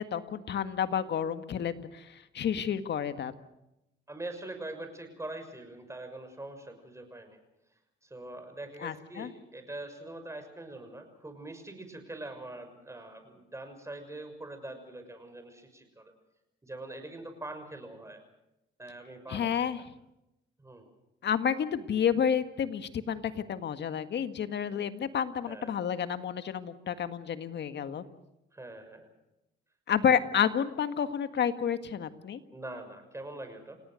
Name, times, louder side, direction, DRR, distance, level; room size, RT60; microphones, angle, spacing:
voice 1, 0.0-3.3 8.8-9.3 19.3-19.8 21.2-28.0 29.9-32.4, left 8 dB, 60° left, 10 dB, 1.8 m, -30 dB
voice 2, 4.1-7.4 8.1-16.1 16.6-18.2 18.8-19.7 20.6-20.9 25.5-25.7 28.5-29.1 32.5-33.8, right 2 dB, 15° right, 7 dB, 6.1 m, -43 dB
29.5 x 18.0 x 6.6 m, 0.88 s
cardioid pair, 90°, 20 cm